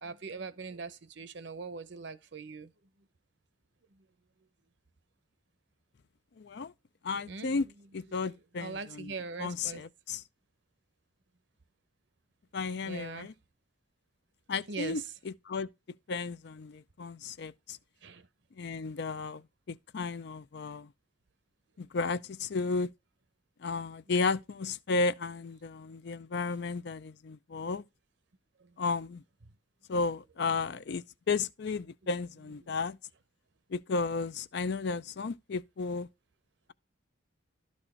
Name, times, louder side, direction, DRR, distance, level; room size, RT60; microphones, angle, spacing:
voice 1, 0.0-2.7 3.9-4.0 7.2-7.7 8.1-9.8 12.8-13.3 14.7-15.1 18.0-18.3 28.6-28.8 32.0-32.1 32.6-32.7, right 4 dB, 60° right, 0.8 m, -42 dB
voice 2, 6.4-6.7 7.0-7.7 7.9-9.1 9.4-10.2 12.5-13.3 14.5-15.7 16.1-17.8 18.6-19.4 19.7-20.9 21.8-22.9 23.6-27.8 28.8-29.2 29.9-33.0 33.7-36.1, left 4 dB, 55° left, 0.5 m, -33 dB
12.0 x 4.3 x 4.4 m
head